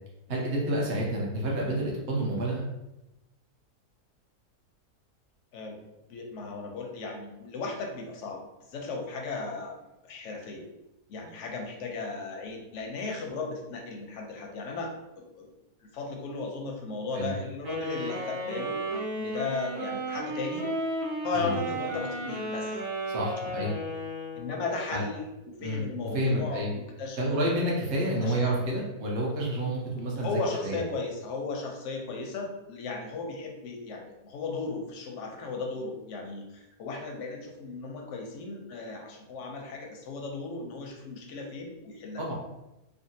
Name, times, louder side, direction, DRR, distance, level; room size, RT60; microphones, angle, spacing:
voice 1, 0.3-2.6 17.1-17.3 21.3-21.5 23.1-23.7 24.9-25.0 25.6-25.8 26.1-26.7 27.2-30.8 42.2-42.3, right 1 dB, 55° right, -3 dB, 1.0 m, -29 dB
voice 2, 6.1-8.4 8.7-9.8 10.0-10.7 11.1-15.5 15.9-18.8 19.2-20.6 21.2-22.7 24.3-27.3 28.0-28.4 30.2-42.2, left 3 dB, 65° left, 1 dB, 0.8 m, -36 dB
Wind instrument woodwind instrument, 17.6-24.6, right 1 dB, 85° right, 1.4 m, -33 dB
3.6 x 2.1 x 2.6 m, 0.94 s
omnidirectional pair, 1.6 m